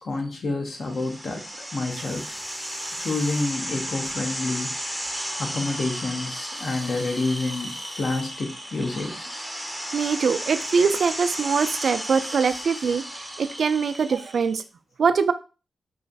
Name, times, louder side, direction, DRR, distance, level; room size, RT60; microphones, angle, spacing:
voice 1, 0.0-4.7 5.4-9.1, left 3 dB, 60° left, 1 dB, 1.0 m, -29 dB
sound 1, 0.8-14.6, equal, ahead, 0.7 m, -34 dB
voice 2, 9.9-14.6 15.0-15.3, right 5 dB, 70° right, 11 dB, 0.3 m, -23 dB
3.1 x 2.4 x 3.9 m, 0.33 s
cardioid pair, 85°, 0 cm